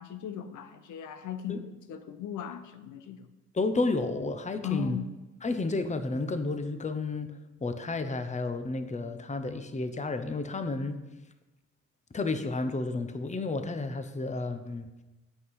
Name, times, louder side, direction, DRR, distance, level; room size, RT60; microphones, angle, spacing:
voice 1, 0.0-3.3 4.6-5.1, left 8 dB, 80° left, 9 dB, 0.8 m, -37 dB
voice 2, 3.5-5.0 5.4-7.3 7.6-11.0 12.1-14.9, left 3 dB, 25° left, 9 dB, 0.9 m, -31 dB
8.4 x 5.8 x 8.0 m, 1.1 s
cardioid pair, 90°, 30 cm